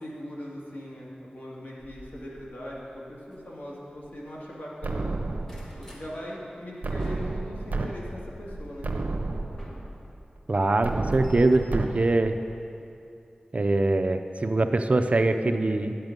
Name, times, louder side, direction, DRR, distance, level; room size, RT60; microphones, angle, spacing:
voice 1, 0.0-5.1 5.8-8.9, equal, 70° left, -5 dB, 2.1 m, -40 dB
sound 1, 1.9-4.6 4.9-6.1 6.5-10.3 10.7-12.9 13.9-14.1 14.6-14.7 14.9-15.0, right 1 dB, 20° left, 2.0 m, -46 dB
sound 2, 4.8-5.8 6.8-7.9 8.3-8.4 8.8-9.8 10.8-11.9, right 3 dB, 80° right, 0.8 m, -31 dB
voice 2, 10.5-12.4 13.5-16.0, right 2 dB, 50° right, 7 dB, 0.5 m, -23 dB
10.5 x 7.8 x 5.3 m, 2.6 s
wide cardioid pair, 60°, 3 cm